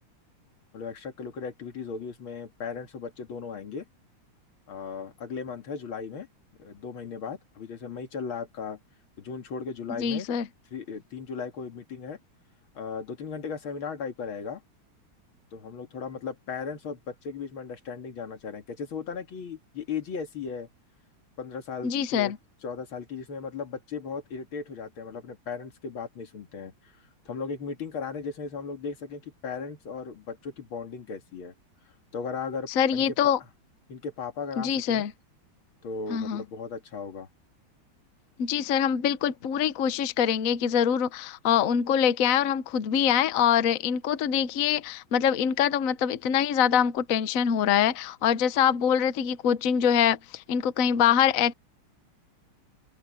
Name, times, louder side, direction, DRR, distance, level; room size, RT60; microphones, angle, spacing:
voice 1, 0.7-3.9 4.7-6.3 6.6-8.8 9.2-10.3 10.7-12.2 12.7-14.6 15.5-20.7 21.4-22.3 22.6-26.9 27.3-31.5 32.1-33.1 33.9-35.1 35.8-37.3, left 5 dB, 75° left, 2.8 m, -36 dB
voice 2, 10.0-10.4 21.8-22.4 32.7-33.4 34.6-35.1 36.1-36.4 38.4-51.5, left 8 dB, 55° left, 1.0 m, -24 dB
omnidirectional pair, 2.3 m